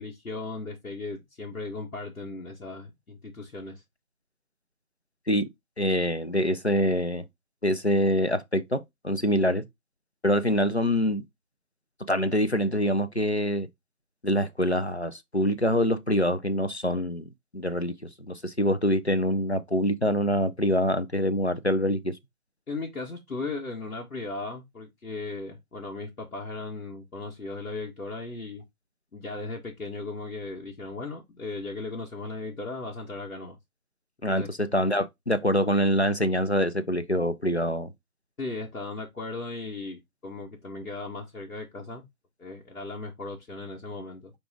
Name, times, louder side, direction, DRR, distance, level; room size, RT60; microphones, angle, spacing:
voice 1, 0.0-3.8 22.7-28.6 29.1-33.6 34.3-34.5 38.4-42.0 42.4-44.3, left 3 dB, 80° left, 1.3 m, -37 dB
voice 2, 5.8-7.2 7.6-9.6 10.2-11.2 12.1-13.7 14.2-17.3 17.5-17.9 18.3-22.2 34.2-37.9, equal, 50° left, 0.5 m, -25 dB
5.0 x 2.4 x 3.7 m
figure-of-eight pair, 175°, 44 cm